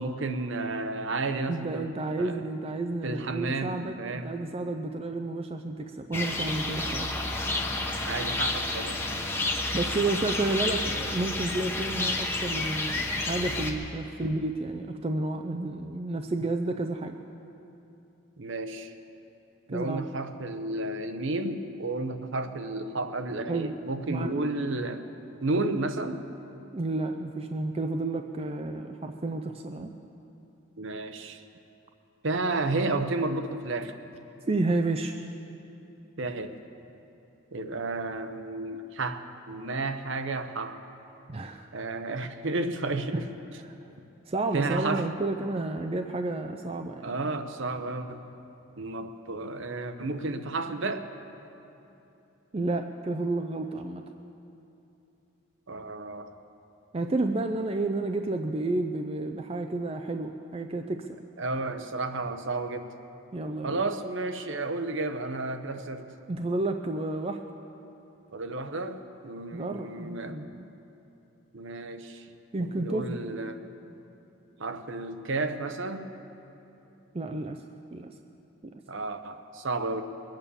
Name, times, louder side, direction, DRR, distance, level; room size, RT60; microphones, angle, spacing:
voice 1, 0.0-1.9 2.2-2.4 3.0-4.3 8.0-9.0 14.2-14.3 18.4-18.9 19.7-25.0 25.4-26.2 30.8-31.4 32.2-34.0 36.2-36.5 37.5-40.8 41.7-43.3 44.5-45.1 47.0-48.2 48.8-51.1 55.7-56.3 61.4-62.9 63.6-66.1 68.3-70.4 71.5-72.3 72.6-73.6 74.6-76.1 78.9-80.0, right 2 dB, 60° right, 8 dB, 0.8 m, -32 dB
voice 2, 1.5-7.1 9.7-17.2 19.7-20.0 23.5-23.8 24.1-24.4 26.7-29.9 34.5-35.1 41.3-41.7 43.1-43.2 43.7-43.9 44.3-47.1 52.5-54.0 56.9-61.2 63.3-63.8 66.3-67.4 69.5-70.7 72.5-73.2 77.1-77.6 77.9-78.1 78.6-78.7, right 2 dB, 25° right, 5 dB, 0.4 m, -31 dB
sound 1, 6.1-13.7, left 2 dB, 10° left, 0.9 m, -30 dB
22.0 x 9.0 x 7.0 m, 2.9 s
head